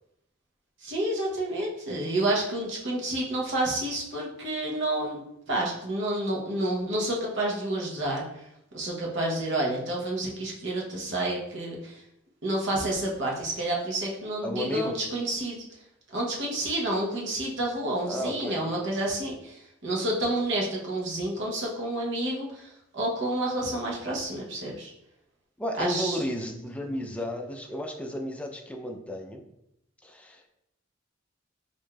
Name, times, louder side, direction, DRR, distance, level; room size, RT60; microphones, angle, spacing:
voice 1, 0.8-5.2 5.5-8.5 8.7-12.0 12.4-15.6 16.1-24.9 25.8-26.2, right 1 dB, 65° right, -2 dB, 0.9 m, -29 dB
voice 2, 14.4-15.0 18.1-18.6 25.6-29.4 30.0-30.4, left 1 dB, 5° left, 3 dB, 0.4 m, -33 dB
4.7 x 2.6 x 2.3 m, 0.80 s
head